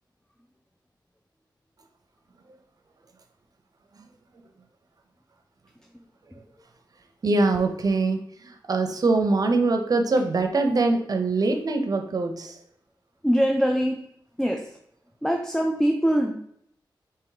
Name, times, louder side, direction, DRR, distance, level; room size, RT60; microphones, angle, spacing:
voice 1, 7.2-12.6, right 3 dB, 50° right, 5 dB, 0.6 m, -23 dB
voice 2, 13.2-14.0 14.4-14.6 15.2-16.3, equal, 5° left, 1 dB, 0.4 m, -22 dB
3.5 x 2.9 x 4.8 m, 0.71 s
wide cardioid pair, 105°, 8 cm